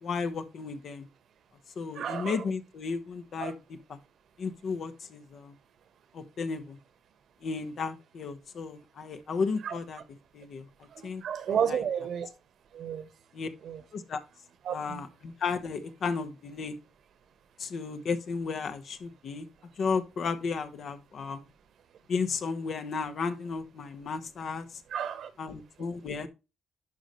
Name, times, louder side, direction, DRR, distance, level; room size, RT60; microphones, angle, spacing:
voice 1, 0.0-1.1 1.8-4.0 4.4-5.5 6.1-6.8 7.4-10.0 10.3-10.6 11.0-11.2 11.5-11.8 13.3-13.5 13.9-14.2 14.7-16.8 17.6-19.5 19.8-21.4 22.1-24.7 25.4-26.3, left 5 dB, 60° left, 1.3 m, -34 dB
voice 2, 2.0-2.4 3.4-3.5 9.6-9.7 11.2-12.3 12.7-13.1 13.6-13.8 14.6-15.0 24.9-25.3, right 8 dB, 65° right, 1.4 m, -31 dB
11.0 x 5.3 x 3.2 m
cardioid pair, 90°, 0 cm